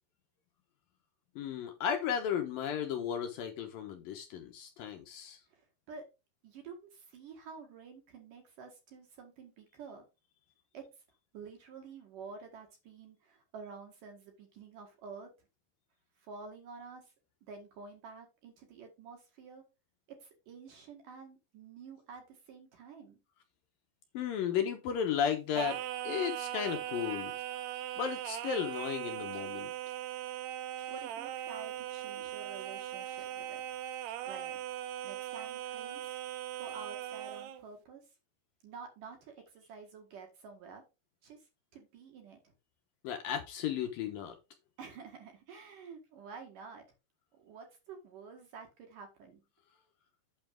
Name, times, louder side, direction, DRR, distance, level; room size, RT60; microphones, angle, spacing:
voice 1, 1.4-5.4 24.1-27.3 28.0-29.7 43.0-44.4, left 8 dB, 75° left, 5 dB, 2.1 m, -34 dB
voice 2, 5.5-6.0 6.4-10.1 10.7-10.8 11.3-15.3 16.2-17.1 17.4-19.6 20.2-23.2 30.6-33.6 34.2-34.6 35.0-36.2 36.6-38.0 38.6-40.8 41.2-42.5 44.8-46.8 47.3-49.4, right 5 dB, 55° right, 4 dB, 2.8 m, -50 dB
Singing, 25.5-37.6, right 12 dB, 75° right, 2.6 m, -39 dB
8.8 x 7.0 x 3.7 m, 0.27 s
omnidirectional pair, 5.4 m